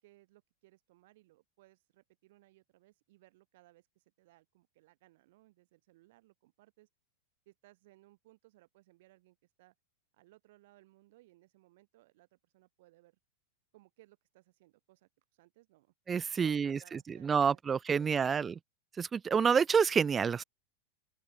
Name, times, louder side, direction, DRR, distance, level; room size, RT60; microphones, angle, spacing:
voice 1, 0.0-6.9 7.5-9.7 10.1-13.2 13.7-15.9 16.3-17.6, right 18 dB, 50° right, 5.6 m, -64 dB
voice 2, 16.1-18.5 19.0-20.4, right 6 dB, 20° right, 0.4 m, -28 dB
open air
figure-of-eight pair, 90°, 0 cm